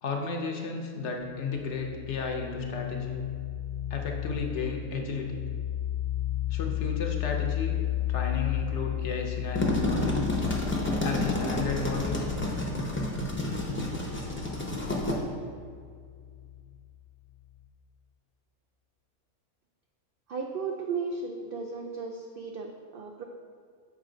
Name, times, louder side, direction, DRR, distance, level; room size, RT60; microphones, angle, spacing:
voice 1, 0.0-3.2 3.9-5.4 6.5-7.8 8.1-10.3 11.0-12.3, left 4 dB, 60° left, 2 dB, 0.9 m, -33 dB
sound 1, 1.2-16.6, left 13 dB, 85° left, 1.2 m, -34 dB
sound 2, 9.3-15.1, left 1 dB, 10° left, 0.6 m, -30 dB
voice 2, 20.3-23.2, right 4 dB, 85° right, 2 dB, 0.4 m, -35 dB
7.2 x 5.2 x 3.8 m, 2.1 s
omnidirectional pair, 1.5 m